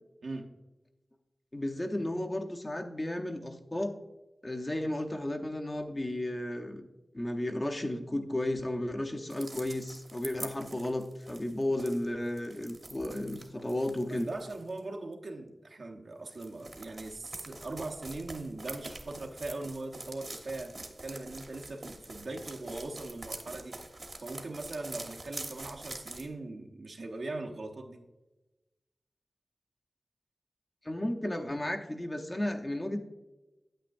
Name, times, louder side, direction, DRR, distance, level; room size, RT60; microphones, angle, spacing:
voice 1, 0.2-0.5 14.1-23.8 24.2-28.0, right 2 dB, 70° right, 1 dB, 1.0 m, -40 dB
voice 2, 1.5-4.0 4.4-6.9 7.1-14.3 30.8-33.0, left 1 dB, 25° left, 3 dB, 0.7 m, -33 dB
sound 1, 9.3-14.8 16.3-26.3, right 2 dB, 45° right, 1.1 m, -45 dB
8.9 x 8.6 x 2.6 m, 1.1 s
wide cardioid pair, 100°, 0 cm